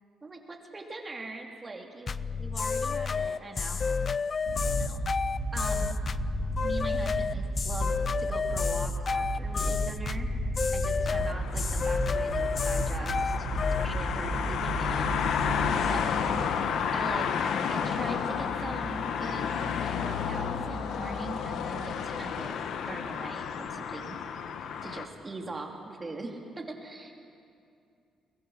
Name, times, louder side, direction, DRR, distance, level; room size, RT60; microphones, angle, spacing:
voice 1, 0.2-2.1 2.4-3.8 4.6-5.0 5.5-6.0 6.6-7.9 8.2-10.3 10.7-13.5 13.8-15.1 15.8-16.4 16.9-17.3 17.7-22.5 22.9-24.2 24.8-27.1, right 3 dB, 25° right, 2 dB, 2.8 m, -41 dB
sound 1, 2.1-13.9, left 5 dB, 40° left, 0.5 m, -30 dB
sound 2, 4.5-17.5, right 3 dB, 70° right, 3.5 m, -34 dB
sound 3, 11.1-25.1, left 7 dB, 75° left, 1.2 m, -31 dB
22.5 x 21.0 x 6.4 m, 2.5 s
cardioid pair, 90°, 0 cm